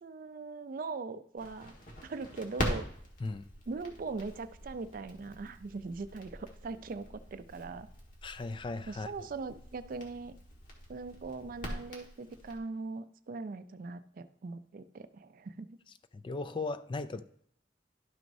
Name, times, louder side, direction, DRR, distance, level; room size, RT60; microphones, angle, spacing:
voice 1, 0.0-1.7 2.0-2.8 3.7-7.9 8.9-10.4 10.9-15.8, right 3 dB, 50° right, 0.4 m, -40 dB
Crackle, 1.4-12.6, equal, 45° left, 1.6 m, -43 dB
voice 2, 8.2-9.1 16.1-17.2, left 3 dB, 25° left, 0.3 m, -37 dB
11.5 x 6.1 x 2.7 m
head